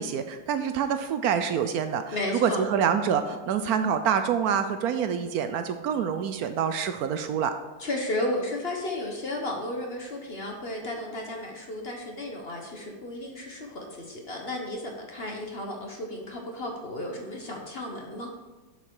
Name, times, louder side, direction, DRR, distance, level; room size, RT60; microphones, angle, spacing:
voice 1, 0.0-7.5, right 7 dB, 75° right, 9 dB, 0.9 m, -26 dB
voice 2, 2.1-2.6 7.8-18.3, left 1 dB, 40° left, 1 dB, 1.0 m, -33 dB
7.0 x 6.7 x 4.7 m, 1.2 s
omnidirectional pair, 2.0 m